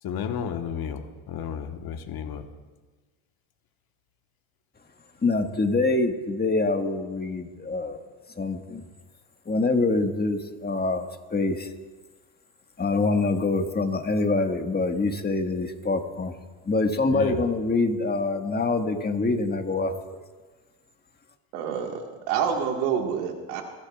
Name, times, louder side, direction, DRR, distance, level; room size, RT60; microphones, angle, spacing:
voice 1, 0.0-2.5 17.1-17.4, left 7 dB, 55° left, 6 dB, 1.4 m, -32 dB
voice 2, 5.2-8.0 8.4-8.8 9.4-11.7 12.8-16.3 16.6-19.9, left 3 dB, 20° left, 4 dB, 1.7 m, -25 dB
voice 3, 21.5-23.6, right 7 dB, 85° right, 3 dB, 1.9 m, -27 dB
27.5 x 10.5 x 2.4 m, 1.3 s
supercardioid pair, 80°, 44 cm